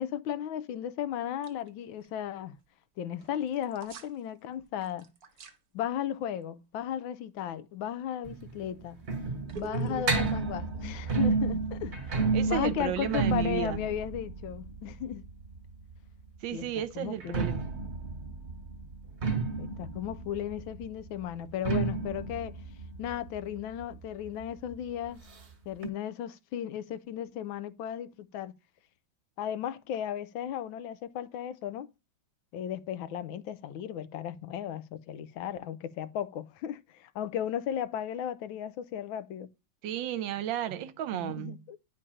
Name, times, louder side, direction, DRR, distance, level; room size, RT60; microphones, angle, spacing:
voice 1, 0.0-2.6 3.0-5.1 5.7-9.0 9.6-12.1 12.5-15.2 16.5-16.7 16.9-17.5 19.6-22.6 23.0-25.2 25.7-28.5 29.4-31.9 32.5-39.5 41.1-41.8, left 10 dB, 85° left, 1.4 m, -35 dB
sound 1, 1.4-1.7 2.0-2.1 3.2-4.2 4.6-5.6 8.2-8.5 9.5-12.4, right 6 dB, 55° right, 1.2 m, -45 dB
sound 2, 8.2-15.9 17.1-24.4 24.7-24.8 25.1-25.2 25.8-25.9, right 4 dB, 40° right, 1.4 m, -32 dB
voice 2, 12.3-13.8 16.4-17.6 39.8-41.6, right 11 dB, 75° right, 1.4 m, -33 dB
10.0 x 4.3 x 4.9 m
omnidirectional pair, 2.2 m